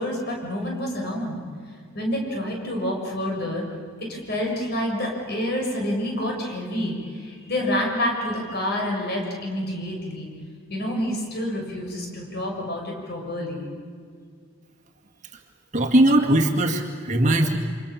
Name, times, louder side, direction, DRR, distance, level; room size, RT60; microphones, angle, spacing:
voice 1, 0.0-1.4 1.9-3.6 4.3-10.3 10.7-13.6, left 1 dB, 45° left, 0 dB, 6.5 m, -28 dB
voice 2, 15.7-17.6, right 1 dB, 35° right, 1 dB, 2.0 m, -19 dB
29.0 x 26.0 x 7.2 m, 2.1 s
head